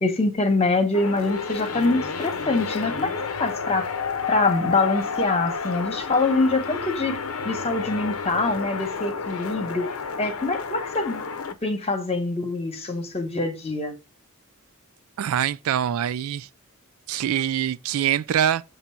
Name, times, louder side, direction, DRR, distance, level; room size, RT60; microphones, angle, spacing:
voice 1, 0.0-3.9 4.3-7.2 7.4-9.9 10.2-11.2 11.6-13.9, left 3 dB, 30° left, 1.1 m, -24 dB
sound 1, 0.9-11.5, left 5 dB, 70° left, 0.7 m, -30 dB
voice 2, 15.2-16.5 17.1-18.6, right 10 dB, 65° right, 0.3 m, -24 dB
7.4 x 2.7 x 5.6 m
head